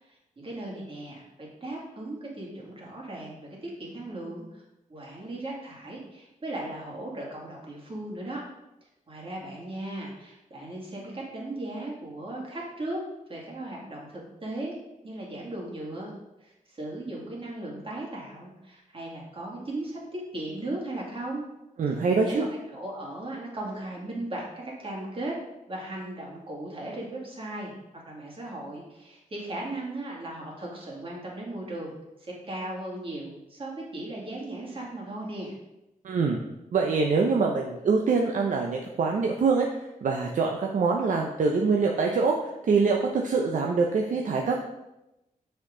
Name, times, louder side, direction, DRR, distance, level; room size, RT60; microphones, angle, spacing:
voice 1, 0.1-4.6 4.9-8.4 9.1-13.0 13.3-14.8 15.0-16.1 16.4-21.4 22.2-25.4 25.7-27.7 28.1-31.9 32.2-35.6, right 1 dB, 40° right, -3 dB, 2.4 m, -37 dB
voice 2, 21.8-22.4 36.0-36.4 36.7-39.7 40.0-44.6, right 4 dB, 65° right, 1 dB, 0.7 m, -24 dB
6.4 x 5.8 x 3.8 m, 0.93 s
cardioid pair, 95°, 14 cm